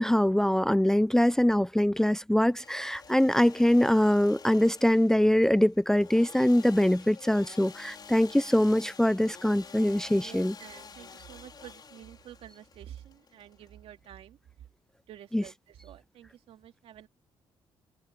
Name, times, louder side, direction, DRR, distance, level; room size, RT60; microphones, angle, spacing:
voice 1, 0.0-10.5 15.3-15.4, left 1 dB, 5° left, 0.5 m, -23 dB
Engine / Sawing, 2.4-14.1, left 5 dB, 45° left, 5.5 m, -49 dB
voice 2, 10.2-14.4 15.1-17.1, right 11 dB, 75° right, 2.8 m, -49 dB
open air
cardioid pair, 75°, 10 cm